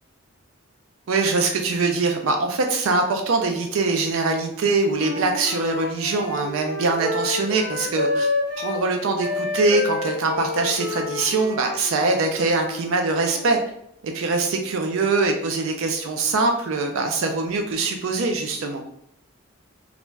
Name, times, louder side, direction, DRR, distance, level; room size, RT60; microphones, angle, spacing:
voice 1, 1.1-8.3 8.6-13.6 14.0-18.8, right 3 dB, 75° right, 4 dB, 0.4 m, -23 dB
Wind instrument woodwind instrument, 4.9-8.8 9.2-13.5, left 3 dB, 45° left, 0.8 m, -29 dB
2.5 x 2.2 x 3.1 m, 0.73 s
head